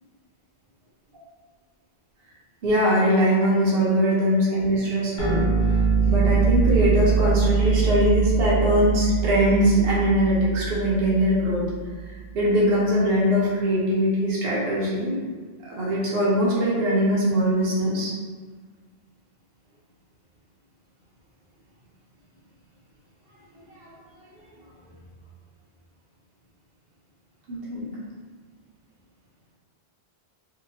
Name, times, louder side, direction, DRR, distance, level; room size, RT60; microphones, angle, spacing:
voice 1, 2.6-5.4 6.0-11.6 12.0-15.2 15.7-18.1 27.5-27.9, equal, 70° right, -6 dB, 0.9 m, -22 dB
sound 1, 5.2-12.0, right 5 dB, 90° left, 1.1 m, -23 dB
2.7 x 2.3 x 2.7 m, 1.5 s
omnidirectional pair, 1.1 m